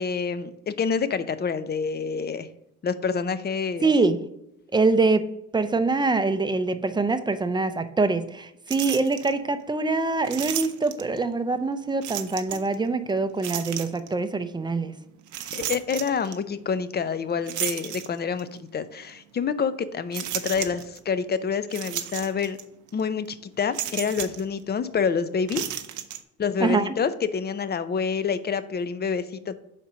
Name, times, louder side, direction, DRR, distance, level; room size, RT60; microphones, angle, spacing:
voice 1, 0.0-2.5 2.8-3.9 15.5-22.6 22.9-25.6 26.4-29.5, left 6 dB, 35° left, 0.5 m, -27 dB
voice 2, 3.8-4.2 4.7-14.9 26.6-26.9, right 3 dB, 15° right, 0.5 m, -24 dB
sound 1, 8.7-9.3 10.2-11.2 12.0-12.7 13.4-14.1 15.3-16.4 17.5-18.5 19.1-19.2 20.1-21.0 21.7-22.6 22.9-23.0 23.7-24.4 25.4-26.2, right 11 dB, 75° right, 0.7 m, -33 dB
5.0 x 4.2 x 6.0 m
cardioid pair, 90°, 30 cm